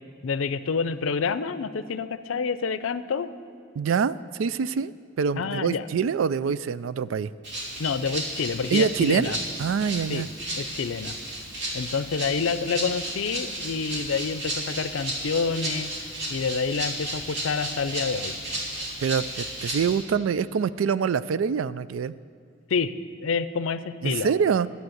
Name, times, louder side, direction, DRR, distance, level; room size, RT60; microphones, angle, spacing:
voice 1, 0.2-3.3 5.4-5.9 7.8-9.4 10.1-10.3 10.6-11.1 11.7-18.3 22.7-22.9 23.2-24.3, left 5 dB, 90° left, 14 dB, 0.5 m, -28 dB
voice 2, 3.8-4.9 5.2-7.3 8.7-9.3 9.6-10.3 19.0-22.1 24.0-24.7, right 6 dB, 80° right, 17 dB, 0.4 m, -25 dB
Rattle (instrument), 7.4-20.0, right 1 dB, 60° right, 3.3 m, -33 dB
11.5 x 8.2 x 7.9 m, 2.4 s
head